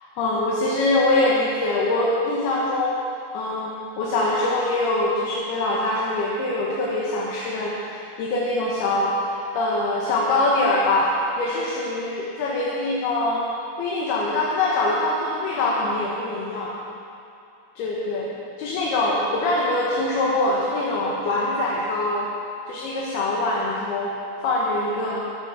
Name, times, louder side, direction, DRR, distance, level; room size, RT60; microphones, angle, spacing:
voice 1, 0.2-3.0 3.3-13.4 13.8-16.7 17.8-22.3 22.7-24.1 24.4-25.2, left 2 dB, 65° left, -4 dB, 3.2 m, -23 dB
13.5 x 11.0 x 6.8 m, 2.6 s
omnidirectional pair, 5.1 m